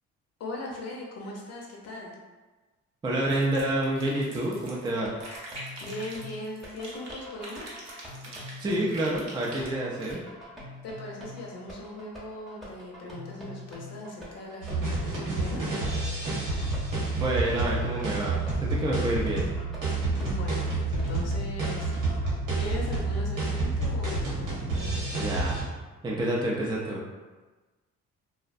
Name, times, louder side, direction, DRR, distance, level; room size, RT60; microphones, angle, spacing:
voice 1, 0.4-2.2 5.6-7.7 10.8-15.6 20.1-21.9 22.6-25.1, left 1 dB, 55° left, -1 dB, 0.7 m, -39 dB
voice 2, 3.0-5.2 8.6-10.2 17.2-19.5 25.1-25.6 26.0-27.0, right 1 dB, 15° right, -4 dB, 0.4 m, -28 dB
sound 1, 3.3-4.9 5.2-7.2 7.4-10.1, right 1 dB, 60° right, 0.8 m, -44 dB
sound 2, 4.7-22.3, left 1 dB, ahead, 0.7 m, -45 dB
sound 3, 14.6-25.6, right 2 dB, 90° right, 1.0 m, -29 dB
2.5 x 2.0 x 2.4 m, 1.2 s
cardioid pair, 90°, 30 cm